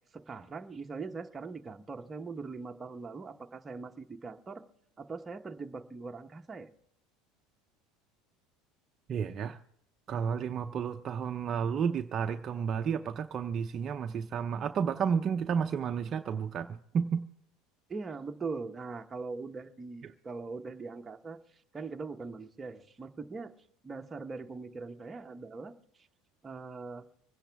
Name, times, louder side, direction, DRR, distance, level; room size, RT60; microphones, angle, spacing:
voice 1, 0.1-4.6 5.0-6.7 17.9-21.4 21.7-23.5 23.8-25.7 26.4-27.0, right 4 dB, 20° right, 5 dB, 1.0 m, -41 dB
voice 2, 9.1-9.6 10.1-16.7 16.9-17.2, right 7 dB, 40° right, 6 dB, 0.6 m, -31 dB
25.0 x 10.0 x 3.5 m, 0.70 s
supercardioid pair, 110°, 0 cm